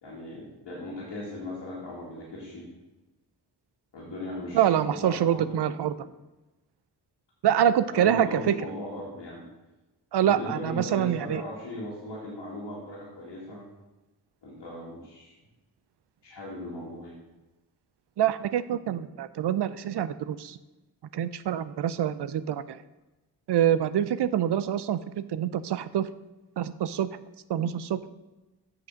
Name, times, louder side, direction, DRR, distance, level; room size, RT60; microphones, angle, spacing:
voice 1, 0.0-2.6 3.9-6.1 7.9-9.4 10.2-13.7 14.4-15.3 16.2-17.1, left 1 dB, 85° left, -7 dB, 2.3 m, -38 dB
voice 2, 4.5-5.9 7.4-8.5 10.1-11.4 18.2-20.6 21.1-22.8 23.5-26.1 26.6-27.1 27.5-28.0, right 10 dB, 70° right, 14 dB, 0.5 m, -25 dB
7.5 x 6.0 x 6.3 m, 1.1 s
cardioid pair, 55°, 42 cm